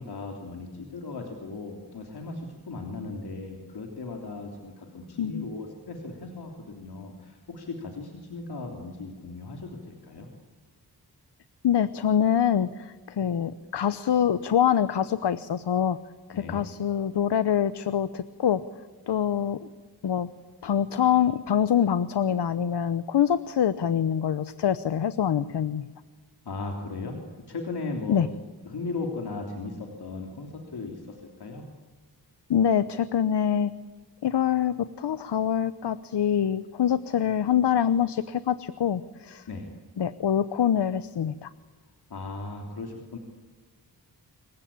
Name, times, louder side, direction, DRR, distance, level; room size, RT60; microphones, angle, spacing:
voice 1, 0.0-10.3 16.3-16.6 26.4-27.2 27.5-28.2 28.6-31.7 39.5-39.7 42.1-43.2, left 3 dB, 70° left, 2 dB, 3.4 m, -37 dB
voice 2, 11.6-16.0 16.3-18.6 19.1-19.7 20.0-20.3 20.6-25.9 28.1-28.3 32.5-33.7 34.2-39.5 40.0-41.5, left 9 dB, 85° left, 14 dB, 1.0 m, -25 dB
27.5 x 22.5 x 8.8 m, 1.4 s
wide cardioid pair, 140°, 40 cm